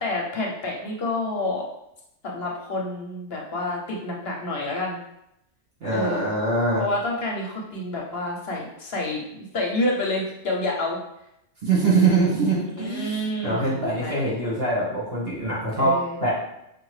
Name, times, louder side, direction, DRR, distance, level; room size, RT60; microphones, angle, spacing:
voice 1, 0.0-1.7 2.2-5.0 5.9-6.3 6.8-11.0 12.7-14.2 15.8-16.2, left 2 dB, 60° left, -2 dB, 1.0 m, -28 dB
voice 2, 5.8-6.8 11.6-16.3, right 3 dB, 50° right, -7 dB, 1.9 m, -23 dB
5.3 x 2.4 x 3.2 m, 0.82 s
omnidirectional pair, 1.2 m